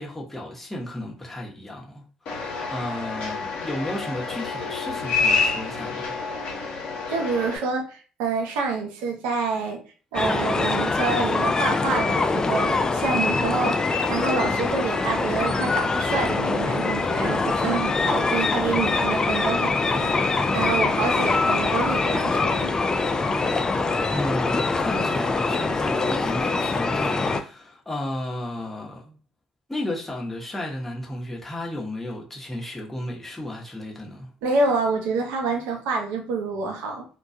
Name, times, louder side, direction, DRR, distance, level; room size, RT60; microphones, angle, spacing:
voice 1, 0.0-6.1 24.1-29.2 29.7-34.3, left 1 dB, 10° left, 0.9 m, -33 dB
sound 1, 2.3-7.6, left 4 dB, 65° left, 0.8 m, -28 dB
voice 2, 7.1-9.8 10.1-22.7 34.4-37.1, right 4 dB, 80° right, 0.6 m, -27 dB
sound 2, 10.1-27.4, left 3 dB, 30° left, 0.4 m, -23 dB
2.2 x 2.2 x 2.6 m
hypercardioid pair, 60°, 2 cm